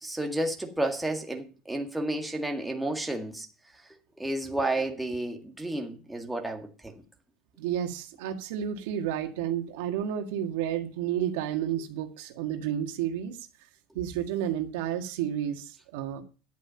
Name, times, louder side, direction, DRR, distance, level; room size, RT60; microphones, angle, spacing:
voice 1, 0.0-3.5 4.2-6.9, right 1 dB, 5° right, 1.9 m, -31 dB
voice 2, 7.6-13.4 13.9-16.2, right 10 dB, 80° right, 1.8 m, -31 dB
10.5 x 8.4 x 5.7 m
supercardioid pair, 140°, 0 cm